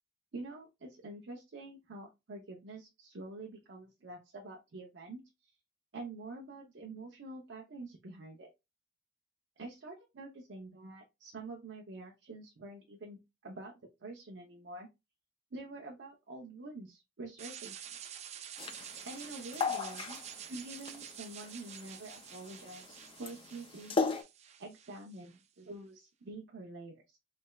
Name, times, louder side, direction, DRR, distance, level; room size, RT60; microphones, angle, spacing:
voice 1, 0.3-5.2 5.9-8.5 9.6-14.9 15.5-17.8 19.0-24.0 24.6-27.2, right 2 dB, 75° right, -1 dB, 0.6 m, -47 dB
sound 1, 17.4-25.4, right 9 dB, 35° right, 0.4 m, -49 dB
sound 2, 18.6-24.2, left 4 dB, 30° left, 0.4 m, -36 dB
3.3 x 3.1 x 2.2 m, 0.24 s
head